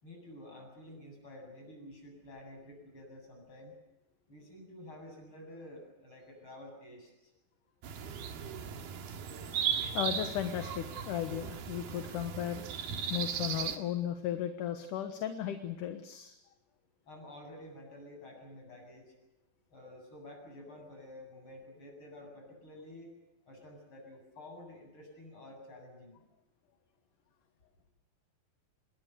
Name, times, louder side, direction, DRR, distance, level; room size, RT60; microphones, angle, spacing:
voice 1, 0.0-3.7 4.3-7.1 17.1-19.1 19.7-23.1 23.5-26.2, left 1 dB, 35° left, 2 dB, 8.8 m, -50 dB
sound 1, 7.8-13.8, right 8 dB, 85° right, 3.7 m, -37 dB
voice 2, 9.7-12.6 13.1-16.3, left 10 dB, 65° left, 7 dB, 2.7 m, -36 dB
27.0 x 22.0 x 6.9 m, 0.96 s
omnidirectional pair, 4.2 m